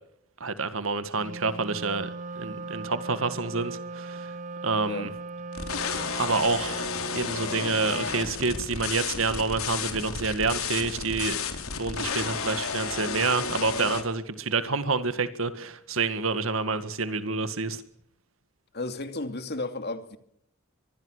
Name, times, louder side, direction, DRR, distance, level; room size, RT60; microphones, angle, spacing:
voice 1, 0.4-2.1 2.4-4.3 4.6-5.1 6.2-11.4 11.7-17.8, right 4 dB, 75° right, 1.8 m, -28 dB
Wind instrument woodwind instrument, 1.1-9.0, right 3 dB, 35° right, 1.0 m, -39 dB
sound 1, 5.5-14.0, left 5 dB, 85° left, 3.9 m, -32 dB
voice 2, 7.5-7.9 18.7-20.2, left 2 dB, 50° left, 2.6 m, -34 dB
24.5 x 21.0 x 6.6 m
head